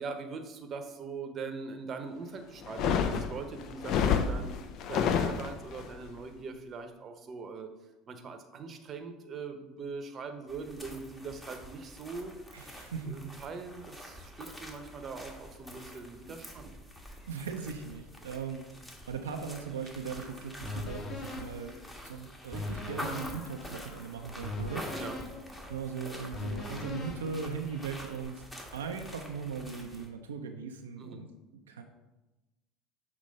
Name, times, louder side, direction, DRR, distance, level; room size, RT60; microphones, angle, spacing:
voice 1, 0.0-4.6 4.9-7.7 8.1-12.3 13.0-16.8 24.9-25.2 31.0-31.3, right 4 dB, 40° right, 7 dB, 0.8 m, -42 dB
sound 1, 2.6-5.9, left 7 dB, 55° left, 0.5 m, -29 dB
sound 2, 10.5-30.1, equal, 10° left, 1.2 m, -47 dB
voice 2, 12.5-13.3 17.3-18.6 19.1-21.7 22.0-24.9 25.7-28.4 28.7-31.3 31.7-31.8, right 5 dB, 90° right, 3 dB, 0.4 m, -39 dB
sound 3, 20.6-28.2, left 2 dB, 30° left, 1.7 m, -41 dB
6.6 x 3.0 x 5.2 m, 1.1 s
hypercardioid pair, 75°, 0 cm